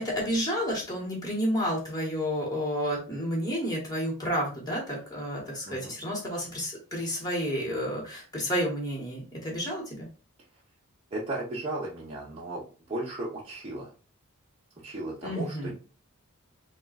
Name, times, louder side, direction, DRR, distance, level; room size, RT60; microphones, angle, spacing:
voice 1, 0.0-10.1 15.2-15.7, equal, 15° left, -1 dB, 1.4 m, -30 dB
voice 2, 11.1-12.6 12.9-13.9 14.8-15.7, right 2 dB, 30° right, -7 dB, 0.8 m, -35 dB
3.7 x 2.4 x 4.0 m, 0.35 s
head